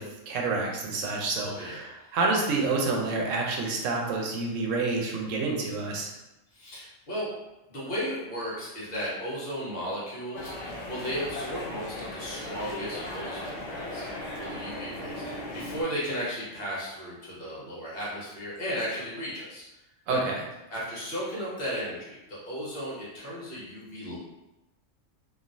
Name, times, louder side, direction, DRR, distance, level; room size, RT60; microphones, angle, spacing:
voice 1, 0.0-6.1 20.1-20.4, right 3 dB, 85° right, 0 dB, 1.0 m, -28 dB
voice 2, 1.4-1.8 6.5-7.3 7.7-10.5 10.9-14.0 14.4-19.6 20.1-20.2 20.7-24.2, equal, 50° left, -7 dB, 1.1 m, -35 dB
sound 1, 10.3-15.8, left 1 dB, 75° left, 1.0 m, -37 dB
3.1 x 2.4 x 2.5 m, 0.98 s
omnidirectional pair, 1.3 m